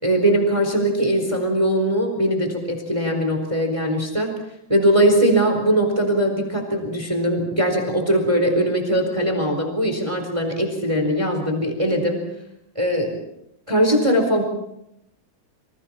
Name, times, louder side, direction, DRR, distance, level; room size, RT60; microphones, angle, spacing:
voice 1, 0.0-4.3 4.7-12.2 12.7-13.2 13.7-14.4, right 1 dB, 10° right, 4 dB, 4.1 m, -20 dB
28.0 x 27.5 x 4.4 m, 0.81 s
omnidirectional pair, 3.8 m